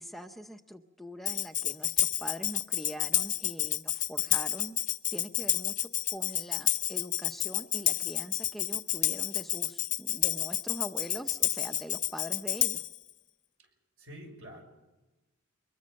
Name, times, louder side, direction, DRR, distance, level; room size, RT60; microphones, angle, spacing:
voice 1, 0.0-4.8 5.1-12.8, equal, ahead, 5 dB, 0.7 m, -43 dB
Tambourine, 1.3-13.0, left 12 dB, 35° left, 0.7 m, -30 dB
voice 2, 13.6-14.6, equal, 65° right, 4 dB, 6.1 m, -48 dB
23.5 x 21.5 x 6.4 m, 1.1 s
head